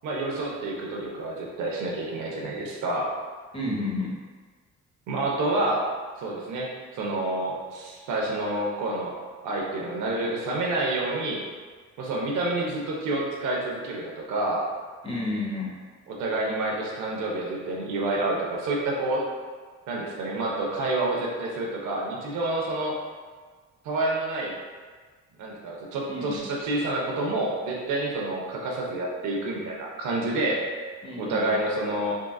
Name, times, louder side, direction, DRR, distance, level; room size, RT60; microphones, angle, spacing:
voice 1, 0.0-3.1 5.1-5.8 6.2-9.1 9.4-11.5 12.0-14.7 16.1-19.2 19.9-23.0 23.8-24.6 25.4-30.6 31.2-32.2, right 2 dB, 80° right, -2 dB, 0.7 m, -28 dB
voice 2, 3.5-4.1 15.0-15.7 26.1-26.4 31.0-31.5, left 2 dB, 20° left, -5 dB, 0.9 m, -31 dB
3.8 x 2.4 x 2.3 m, 1.5 s
cardioid pair, 90°, 30 cm